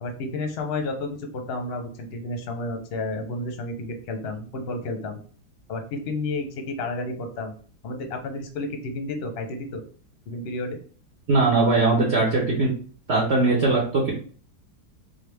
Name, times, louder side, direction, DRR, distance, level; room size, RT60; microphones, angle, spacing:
voice 1, 0.0-5.2 5.7-7.5 7.8-9.8 10.3-10.8, left 2 dB, 50° left, 5 dB, 0.8 m, -31 dB
voice 2, 11.3-12.7 13.1-14.1, right 3 dB, 50° right, -3 dB, 1.0 m, -20 dB
3.9 x 2.7 x 3.3 m, 0.42 s
omnidirectional pair, 1.7 m